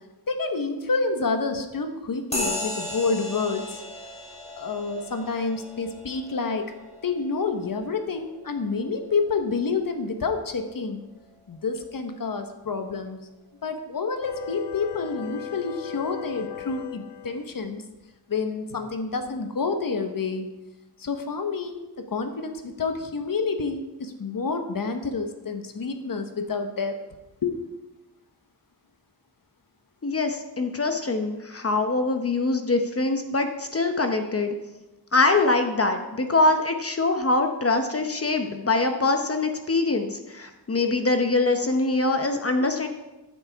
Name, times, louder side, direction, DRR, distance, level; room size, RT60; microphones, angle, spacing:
voice 1, 0.3-3.8 4.5-6.7 7.0-11.0 11.5-13.2 13.6-17.8 18.3-20.5 21.0-27.0 27.4-27.6, left 4 dB, 60° left, 6 dB, 1.3 m, -28 dB
sound 1, 2.3-10.2, left 1 dB, 15° left, 3.8 m, -37 dB
sound 2, 14.2-17.5, left 12 dB, 90° left, 0.6 m, -37 dB
voice 2, 30.0-34.5 35.1-42.9, left 3 dB, 35° left, 6 dB, 0.9 m, -23 dB
15.0 x 9.9 x 3.6 m, 1.0 s
wide cardioid pair, 135°, 39 cm